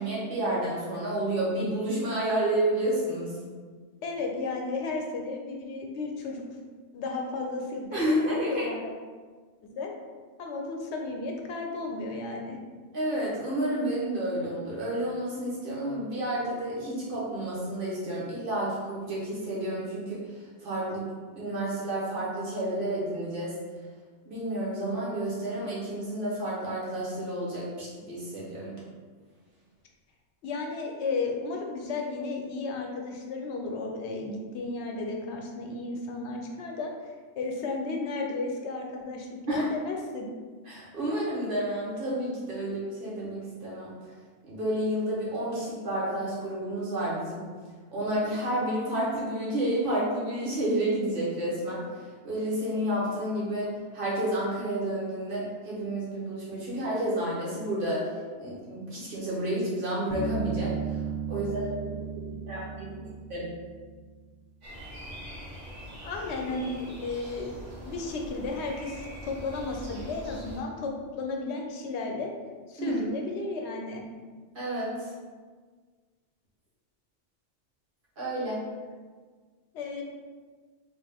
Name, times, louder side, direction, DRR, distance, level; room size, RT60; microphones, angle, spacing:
voice 1, 0.0-3.3 7.9-8.7 12.9-20.2 20.6-21.1 21.3-23.5 24.2-28.8 39.5-39.6 40.7-44.0 44.5-47.4 47.9-51.8 52.2-58.1 58.4-60.7 61.3-62.0 62.3-63.0 63.3-63.5 72.8-73.0 74.5-75.1 78.2-78.6, right 1 dB, 50° right, -6 dB, 1.2 m, -30 dB
voice 2, 4.0-6.4 6.9-8.9 9.6-9.9 10.4-12.6 30.4-36.9 37.4-40.3 66.0-67.6 67.8-70.9 71.2-72.3 72.7-74.0 79.7-80.0, left 3 dB, 70° left, 1 dB, 0.9 m, -33 dB
Bass guitar, 60.1-63.8, right 5 dB, 40° left, 0.6 m, -34 dB
sound 1, 64.6-70.6, equal, 85° right, 1.5 m, -43 dB
3.4 x 2.5 x 3.4 m, 1.5 s
omnidirectional pair, 1.2 m